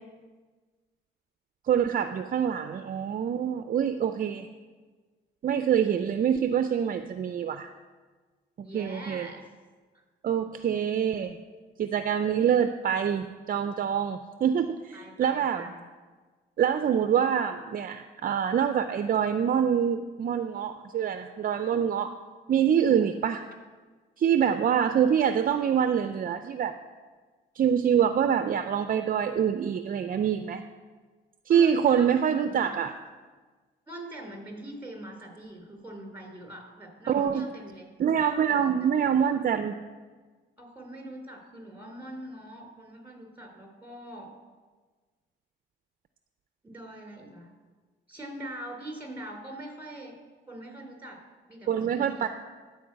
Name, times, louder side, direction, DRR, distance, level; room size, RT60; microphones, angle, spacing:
voice 1, 1.7-4.5 5.4-7.7 8.6-9.3 10.2-11.4 11.8-15.6 16.6-22.1 22.5-23.4 24.2-26.7 27.6-30.6 31.5-32.9 37.1-37.5 38.0-39.7 51.7-52.3, right 8 dB, 45° right, 9 dB, 0.5 m, -25 dB
voice 2, 8.6-9.4 9.9-10.0 14.9-15.8 22.8-23.0 31.5-32.8 33.9-37.9 38.8-38.9 40.6-44.3 46.6-47.5 48.1-50.1 50.5-51.2 51.5-52.3, right 1 dB, 10° right, 1 dB, 3.6 m, -43 dB
14.0 x 4.7 x 7.6 m, 1.4 s
cardioid pair, 90°, 20 cm